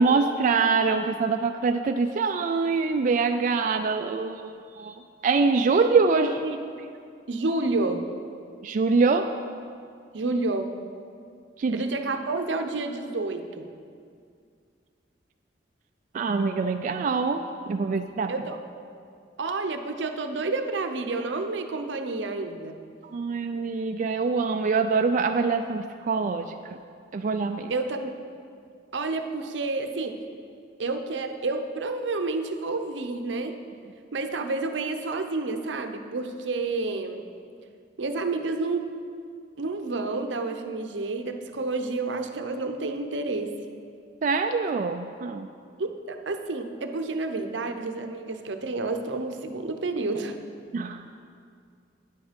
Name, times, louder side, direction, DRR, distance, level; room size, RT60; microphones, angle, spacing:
voice 1, 0.0-6.3 8.6-9.3 11.6-11.8 16.1-18.3 23.0-26.8 27.1-27.7 44.2-45.5 50.7-51.1, right 4 dB, 45° right, 5 dB, 0.3 m, -24 dB
voice 2, 6.1-6.6 7.3-8.0 10.1-10.7 11.7-13.6 18.3-18.6 19.4-22.8 27.7-28.1 28.9-30.1 30.8-33.6 34.1-37.3 38.0-38.9 39.6-43.5 45.8-50.4, right 3 dB, 80° right, 7 dB, 0.7 m, -29 dB
9.5 x 7.9 x 5.1 m, 2.2 s
head